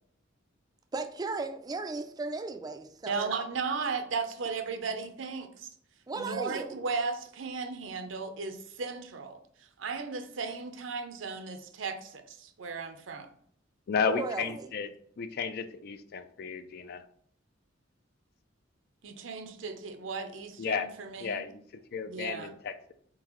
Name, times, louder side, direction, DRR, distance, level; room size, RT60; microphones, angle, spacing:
voice 1, 0.9-3.3 6.1-6.7 14.1-14.7, right 3 dB, 20° right, 0.3 m, -36 dB
voice 2, 3.1-5.7 6.2-13.3 19.0-21.4 22.0-22.5, right 4 dB, 75° right, 0.6 m, -36 dB
voice 3, 13.9-14.9 15.2-17.0 20.6-20.9 21.2-22.9, left 5 dB, 50° left, 0.4 m, -33 dB
4.3 x 3.8 x 3.0 m
head